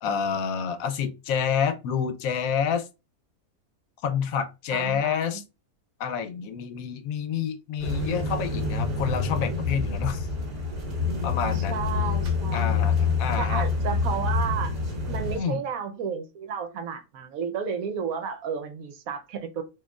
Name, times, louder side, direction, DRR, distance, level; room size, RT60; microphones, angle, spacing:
voice 1, 0.0-2.9 4.0-5.4 6.0-10.3 11.2-11.8 12.5-13.7 15.4-15.6, left 7 dB, 75° left, 1.0 m, -28 dB
voice 2, 4.7-5.4 11.5-12.8 13.4-14.7 15.1-19.6, right 6 dB, 75° right, 1.1 m, -32 dB
sound 1, 7.8-15.4, left 4 dB, 40° right, 1.6 m, -27 dB
4.4 x 2.6 x 2.3 m
omnidirectional pair, 1.5 m